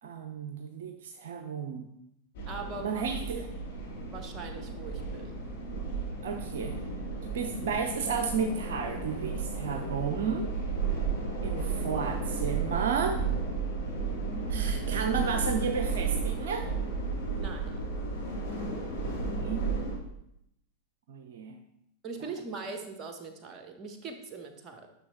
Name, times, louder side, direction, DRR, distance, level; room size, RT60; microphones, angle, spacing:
voice 1, 0.0-1.9 2.8-3.4 6.2-6.8 7.2-10.5 11.4-13.2 14.5-16.7 19.1-19.8 21.1-21.6, right 6 dB, 60° right, 5 dB, 0.7 m, -33 dB
Moscow subway ambience omni, 2.3-19.9, right 4 dB, 50° left, 3.7 m, -33 dB
voice 2, 2.4-3.1 3.3-3.5 4.1-5.4 17.3-17.9 22.0-24.9, right 4 dB, 25° right, 5 dB, 1.3 m, -41 dB
10.5 x 6.3 x 3.3 m, 0.80 s
figure-of-eight pair, 90°, 0 cm